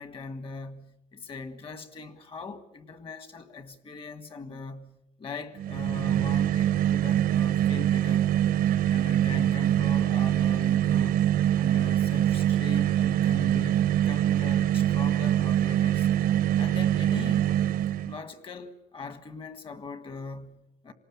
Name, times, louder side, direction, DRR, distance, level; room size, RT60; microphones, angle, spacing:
voice 1, 0.0-8.3 8.9-11.3 11.6-16.1 16.6-17.5 18.0-20.9, left 4 dB, 35° left, 1.7 m, -41 dB
sound 1, 5.6-18.2, right 11 dB, 85° right, 0.9 m, -24 dB
27.0 x 19.0 x 8.7 m
cardioid pair, 160°, 15 cm